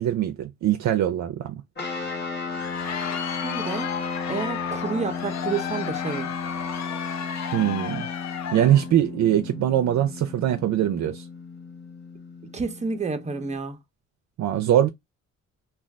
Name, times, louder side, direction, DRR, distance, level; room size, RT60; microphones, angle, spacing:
voice 1, 0.0-1.5 7.5-8.0 8.5-11.2 14.4-14.9, right 11 dB, 70° right, 0.5 m, -22 dB
sound 1, 1.7-13.6, left 4 dB, 35° left, 1.0 m, -35 dB
Crowd, 2.3-8.9, left 8 dB, 65° left, 0.6 m, -33 dB
voice 2, 3.2-3.9 4.3-6.3 12.4-13.8, right 4 dB, 25° right, 0.7 m, -30 dB
2.5 x 2.3 x 3.3 m
cardioid pair, 115°, 29 cm